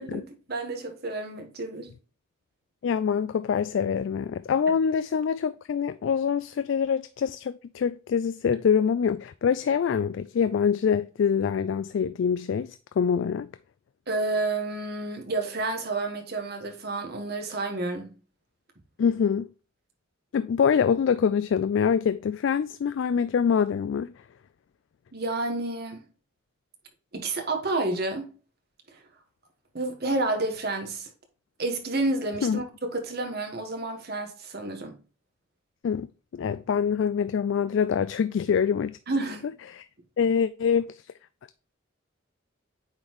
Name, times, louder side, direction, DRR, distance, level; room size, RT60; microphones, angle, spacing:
voice 1, 0.0-1.9 14.1-18.1 25.1-26.1 27.1-28.3 29.7-31.1 31.6-32.6 32.9-35.0 39.1-39.5, right 2 dB, 50° right, 1.4 m, -30 dB
voice 2, 2.8-13.5 19.0-19.5 20.3-24.1 32.4-32.6 35.8-36.1 36.3-39.0 39.7-39.9 40.2-41.0, left 7 dB, 65° left, 0.3 m, -25 dB
8.8 x 3.9 x 3.0 m
head